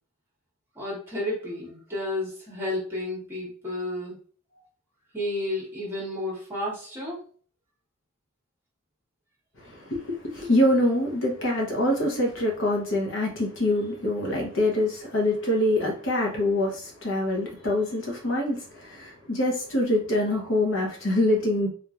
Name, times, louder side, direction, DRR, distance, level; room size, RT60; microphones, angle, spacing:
voice 1, 0.7-4.2 5.1-7.2, left 1 dB, 10° right, -5 dB, 1.3 m, -31 dB
voice 2, 9.6-21.7, left 1 dB, 60° left, -1 dB, 0.9 m, -25 dB
3.6 x 2.9 x 2.4 m, 0.43 s
head